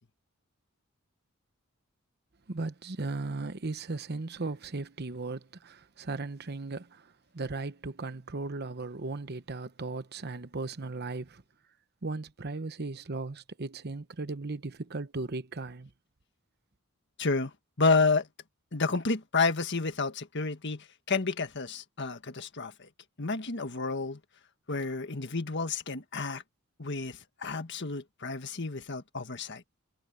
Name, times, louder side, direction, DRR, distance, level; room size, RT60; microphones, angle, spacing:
voice 1, 2.5-11.4 12.0-15.9, right 3 dB, 50° right, 1.0 m, -37 dB
voice 2, 17.2-17.5 17.8-18.3 18.7-22.9 23.2-24.2 24.7-26.4 26.8-29.6, left 4 dB, 55° left, 1.7 m, -30 dB
head